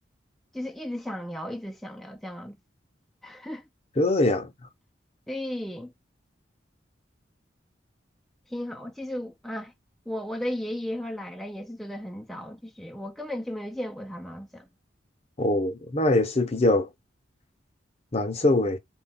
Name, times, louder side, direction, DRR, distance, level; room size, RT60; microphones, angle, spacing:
voice 1, 0.5-2.6 3.2-3.7 5.3-5.9 8.5-9.7 10.1-14.7, left 1 dB, ahead, 0.4 m, -35 dB
voice 2, 4.0-4.5 15.4-16.9 18.1-18.8, left 2 dB, 35° left, 0.8 m, -23 dB
4.3 x 2.2 x 4.1 m
head